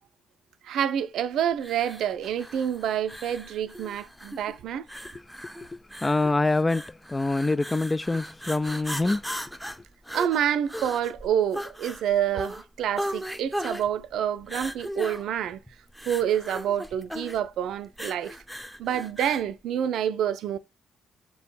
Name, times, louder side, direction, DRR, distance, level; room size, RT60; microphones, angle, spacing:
voice 1, 0.6-4.8 10.1-15.6 16.1-18.4 18.8-20.6, right 9 dB, 60° right, 0.5 m, -27 dB
sound 1, 1.6-19.5, equal, ahead, 0.7 m, -38 dB
voice 2, 5.7-9.2, left 2 dB, 20° left, 0.3 m, -25 dB
7.2 x 3.9 x 4.0 m
figure-of-eight pair, 45°, 0 cm